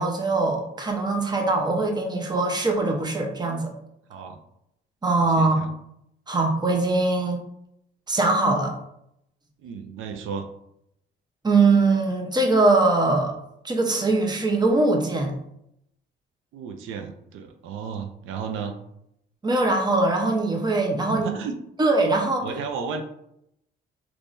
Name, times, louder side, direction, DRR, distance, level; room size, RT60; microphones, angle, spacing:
voice 1, 0.0-3.7 5.0-5.6 6.3-7.4 8.1-8.7 11.4-13.3 13.6-15.3 19.4-21.3 21.8-22.5, right 3 dB, 20° right, 2 dB, 0.8 m, -22 dB
voice 2, 5.4-5.7 9.6-10.5 16.5-18.8 21.1-21.6 22.4-23.0, right 6 dB, 85° right, 5 dB, 0.5 m, -33 dB
3.6 x 3.1 x 2.6 m, 0.77 s
cardioid pair, 90°, 20 cm